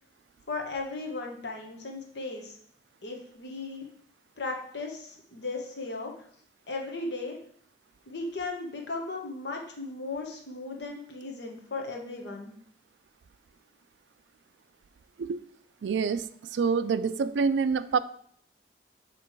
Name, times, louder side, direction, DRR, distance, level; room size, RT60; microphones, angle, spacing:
voice 1, 0.5-2.6 3.0-3.9 4.4-6.1 6.7-7.4 8.1-12.5, left 3 dB, 80° left, 1 dB, 1.2 m, -36 dB
voice 2, 15.8-16.3 16.5-18.0, right 5 dB, 90° right, 14 dB, 0.4 m, -26 dB
7.4 x 3.2 x 4.6 m, 0.62 s
head